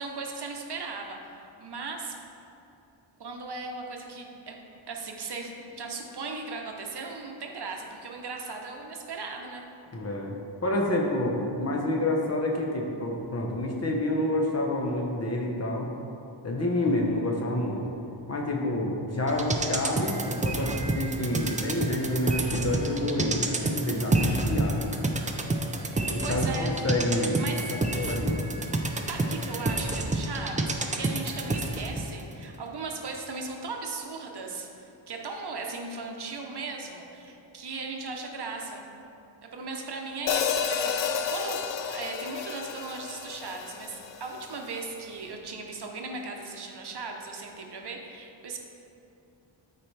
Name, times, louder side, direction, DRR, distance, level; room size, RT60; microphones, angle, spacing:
voice 1, 0.0-2.1 3.2-4.6 4.9-9.6 16.6-17.0 26.2-26.7 27.1-27.7 28.0-28.1 29.1-38.8 39.4-41.6 41.9-48.6, right 3 dB, 50° right, 1 dB, 0.9 m, -37 dB
voice 2, 9.9-15.9 16.4-17.8 18.3-24.9 26.1-28.4, left 1 dB, 30° left, 0 dB, 1.0 m, -28 dB
sound 1, 19.3-32.1 32.4-32.5, right 2 dB, 15° right, 0.4 m, -29 dB
Hi-hat, 40.3-44.5, left 7 dB, 65° left, 0.6 m, -31 dB
13.0 x 4.4 x 3.3 m, 2.7 s
wide cardioid pair, 145°, 49 cm